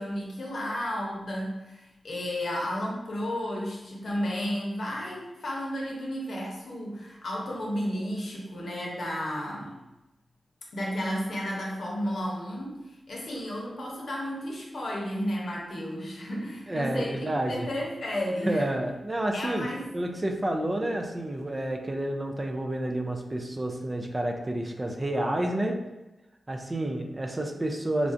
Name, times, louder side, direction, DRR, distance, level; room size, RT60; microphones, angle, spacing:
voice 1, 0.0-9.7 10.7-18.6 19.3-19.9, equal, 70° left, -3 dB, 0.7 m, -33 dB
voice 2, 16.7-17.7 18.4-19.7 19.9-25.8 26.5-28.1, right 1 dB, 30° right, 3 dB, 0.4 m, -29 dB
3.2 x 2.4 x 2.5 m, 1.0 s
cardioid pair, 50°, 0 cm